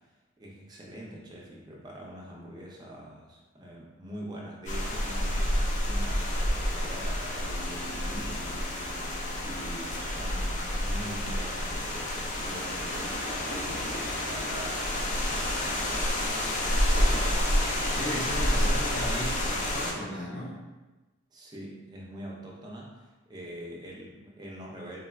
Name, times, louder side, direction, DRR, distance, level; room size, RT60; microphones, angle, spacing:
voice 1, 0.4-17.6 18.6-18.8 21.3-25.0, equal, 20° right, -3 dB, 0.5 m, -44 dB
sound 1, 4.7-19.9, left 1 dB, 35° left, 0.4 m, -29 dB
Bass guitar, 7.4-11.7, equal, 90° right, 0.4 m, -49 dB
voice 2, 17.9-20.6, equal, 55° left, -8 dB, 0.7 m, -36 dB
3.7 x 2.2 x 2.3 m, 1.2 s
head